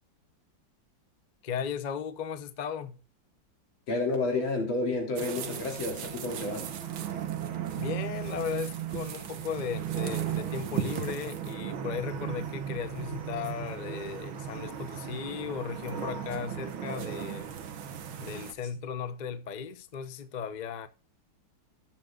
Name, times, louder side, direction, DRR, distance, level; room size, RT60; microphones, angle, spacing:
voice 1, 1.4-3.0 7.7-17.5 18.2-20.9, left 7 dB, 55° left, 0.4 m, -36 dB
voice 2, 3.9-6.7, left 2 dB, 80° left, 4.2 m, -30 dB
sound 1, 5.2-18.5, right 9 dB, 85° right, 2.0 m, -36 dB
18.5 x 7.4 x 2.4 m
omnidirectional pair, 2.2 m